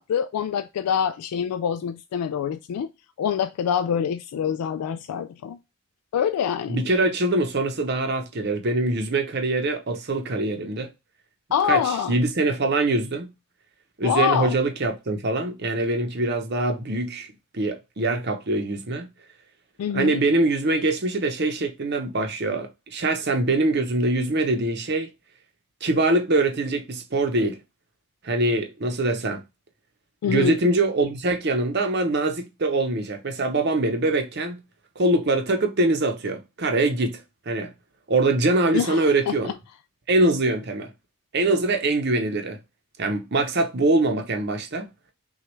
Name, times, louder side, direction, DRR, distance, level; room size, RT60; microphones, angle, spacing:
voice 1, 0.0-2.9 3.2-5.6 6.1-6.8 11.5-12.2 14.0-14.6 19.8-20.2 30.2-30.6 38.7-39.5, left 8 dB, 85° left, 0.3 m, -25 dB
voice 2, 6.7-10.9 11.7-13.3 14.0-17.3 17.5-19.1 19.9-25.1 25.8-27.6 28.2-29.4 30.3-34.6 35.0-37.7 38.1-39.5 40.1-40.9 41.3-42.6 43.0-44.9, right 2 dB, 45° right, 0.7 m, -23 dB
5.9 x 2.3 x 3.2 m
head